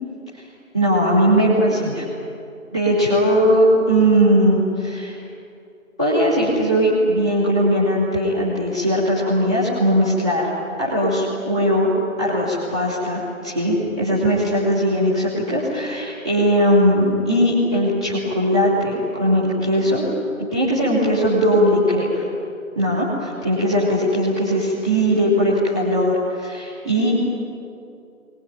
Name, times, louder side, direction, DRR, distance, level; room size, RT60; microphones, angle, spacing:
voice 1, 0.7-2.0 2.7-5.1 6.0-10.5 10.8-11.9 12.2-20.1 20.4-22.2 22.7-27.2, equal, 5° left, -10 dB, 1.7 m, -19 dB
24.5 x 20.5 x 9.2 m, 2.5 s
figure-of-eight pair, 165°, 42 cm